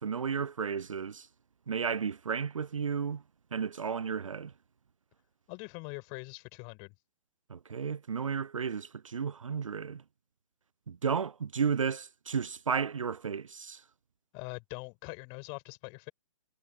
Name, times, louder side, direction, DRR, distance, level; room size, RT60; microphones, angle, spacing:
voice 1, 0.0-1.3 1.7-3.2 3.5-4.5 7.5-10.0 10.9-13.8, right 6 dB, 70° right, 0.4 m, -33 dB
voice 2, 5.5-6.9 14.3-16.1, left 35 dB, 30° left, 7.4 m, -43 dB
figure-of-eight pair, 120°, 17 cm